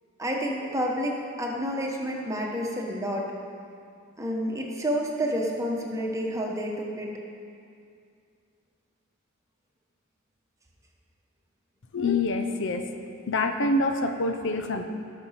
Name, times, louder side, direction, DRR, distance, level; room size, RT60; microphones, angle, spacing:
voice 1, 0.2-3.2 4.2-7.1, equal, 15° right, -1 dB, 1.3 m, -29 dB
voice 2, 11.9-12.9 13.3-14.8, left 2 dB, 60° left, 6 dB, 0.8 m, -26 dB
17.5 x 6.2 x 5.8 m, 2.4 s
head